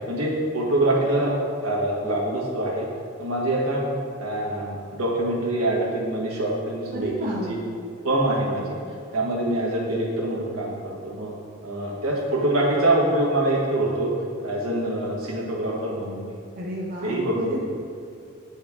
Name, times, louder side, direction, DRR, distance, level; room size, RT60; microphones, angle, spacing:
voice 1, 0.1-1.3 1.6-2.9 3.2-3.9 4.2-7.6 8.0-8.8 9.1-11.3 11.6-14.1 14.4-16.4 17.0-17.6, right 1 dB, 85° right, -4 dB, 1.5 m, -25 dB
voice 2, 6.9-7.6 16.5-17.6, equal, 40° right, -3 dB, 0.7 m, -31 dB
8.0 x 4.5 x 3.6 m, 2.5 s
head